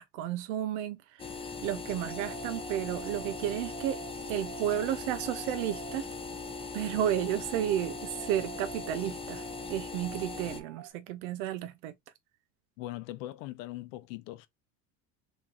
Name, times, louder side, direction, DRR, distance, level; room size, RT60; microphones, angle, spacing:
voice 1, 0.0-4.0 4.3-6.1 6.7-11.9, right 11 dB, 85° right, 0.5 m, -32 dB
sound 1, 1.2-10.6, left 5 dB, 15° left, 0.5 m, -40 dB
sound 2, 2.0-10.9, right 10 dB, 65° right, 0.8 m, -47 dB
voice 2, 12.8-14.5, left 16 dB, 85° left, 0.7 m, -40 dB
3.0 x 2.7 x 3.7 m
supercardioid pair, 125°, 38 cm